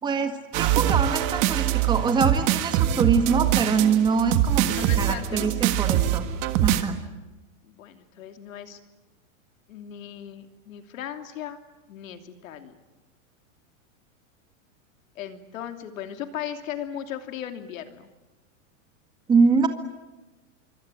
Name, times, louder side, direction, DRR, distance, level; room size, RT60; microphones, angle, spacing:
voice 1, 0.0-6.3 6.6-7.0 19.3-19.7, right 5 dB, 10° right, 7 dB, 1.9 m, -24 dB
sound 1, 0.5-6.8, right 12 dB, 30° right, 1.6 m, -23 dB
voice 2, 4.7-5.5 7.6-8.8 9.7-11.6 11.9-12.8 15.1-18.1, left 10 dB, 70° left, 7 dB, 3.0 m, -37 dB
26.0 x 24.5 x 9.2 m, 1.1 s
supercardioid pair, 170°, 41 cm